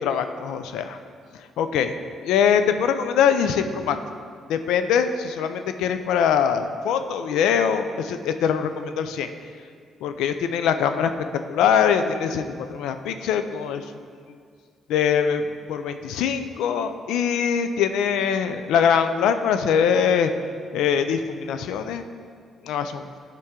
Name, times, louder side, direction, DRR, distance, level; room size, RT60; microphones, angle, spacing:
voice 1, 0.0-1.0 1.6-1.9 2.2-4.0 4.5-9.3 10.0-11.1 11.5-14.1 14.9-20.3 20.7-22.0 22.6-23.1, left 7 dB, 90° left, 9 dB, 0.4 m, -23 dB
9.6 x 4.5 x 3.7 m, 2.1 s
cardioid pair, 90°, 0 cm